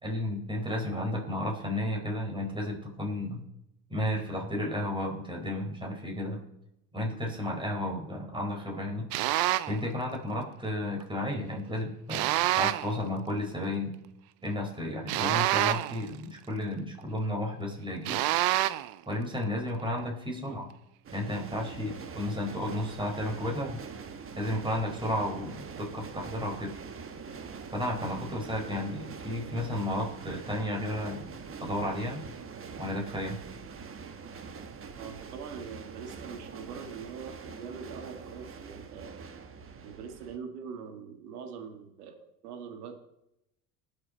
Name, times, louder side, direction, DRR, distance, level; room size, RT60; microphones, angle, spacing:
voice 1, 0.0-3.4 3.9-6.4 6.9-9.1 9.7-13.9 14.4-18.2 19.1-20.7 21.1-23.8 24.4-26.7 27.7-31.3 31.6-32.2 32.8-33.4, left 1 dB, 10° right, 0 dB, 4.4 m, -33 dB
sound 1, 9.1-9.8 12.1-13.0 15.1-16.1 18.1-18.9, right 15 dB, 55° right, 0.7 m, -27 dB
sound 2, 21.0-40.4, right 5 dB, 30° right, 1.3 m, -44 dB
voice 2, 35.0-39.2 39.8-42.9, right 6 dB, 80° right, 6 dB, 2.1 m, -43 dB
19.5 x 6.8 x 4.2 m, 0.83 s
hypercardioid pair, 85°, 45 cm